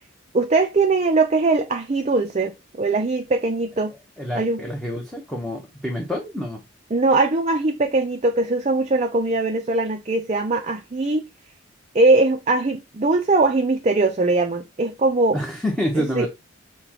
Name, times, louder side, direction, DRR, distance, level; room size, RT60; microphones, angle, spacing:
voice 1, 0.3-3.9 4.4-4.6 6.9-11.2 11.9-15.4 16.0-16.3, right 3 dB, 35° right, 0.5 m, -21 dB
voice 2, 4.2-6.6 15.3-16.3, equal, ahead, 0.8 m, -27 dB
6.8 x 2.3 x 2.9 m
head